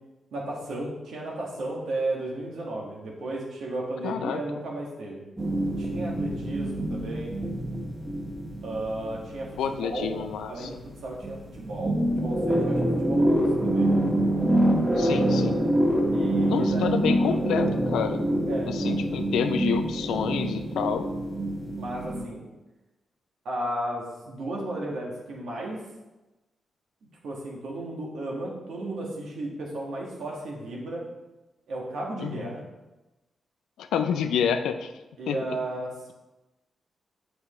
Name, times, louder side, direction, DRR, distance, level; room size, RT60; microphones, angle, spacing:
voice 1, 0.3-5.2 5.8-7.5 8.6-9.5 9.8-10.2 10.5-13.9 16.1-16.9 18.5-18.7 21.8-22.4 23.4-25.8 27.2-31.0 31.7-32.6 35.2-35.9, right 1 dB, 80° right, -2 dB, 1.7 m, -34 dB
voice 2, 4.0-4.4 9.6-10.7 15.0-15.7 16.5-18.2 18.7-21.0 32.2-32.5 33.8-34.9 35.3-35.4, left 7 dB, 90° left, 8 dB, 0.4 m, -28 dB
sound 1, 5.4-10.9 11.2-22.3, right 1 dB, 20° right, 1.7 m, -26 dB
8.0 x 6.1 x 3.2 m, 1.1 s
supercardioid pair, 50°, 0 cm